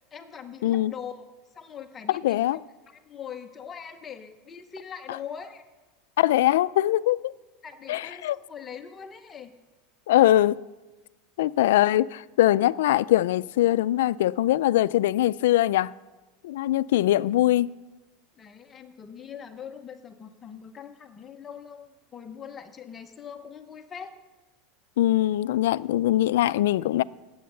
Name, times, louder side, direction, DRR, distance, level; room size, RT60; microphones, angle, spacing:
voice 1, 0.1-1.3 1.5-5.6 7.6-9.5 18.4-24.1, left 7 dB, 20° left, 0.8 m, -42 dB
voice 2, 2.1-2.6 6.2-7.3 7.9-8.4 10.1-10.6 11.4-15.9 16.4-17.7 25.0-27.0, left 14 dB, 85° left, 0.4 m, -22 dB
18.0 x 7.9 x 6.7 m
supercardioid pair, 160°, 0 cm